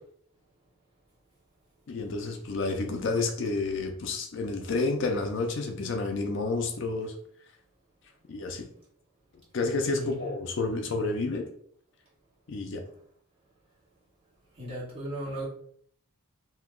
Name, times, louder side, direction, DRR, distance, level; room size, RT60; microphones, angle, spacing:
voice 1, 1.9-7.1 8.3-8.6 9.5-11.5 12.5-12.8, left 3 dB, 55° left, 4 dB, 0.4 m, -30 dB
voice 2, 9.9-10.3 14.6-15.4, equal, 25° right, -8 dB, 1.3 m, -36 dB
2.8 x 2.2 x 3.5 m, 0.64 s
head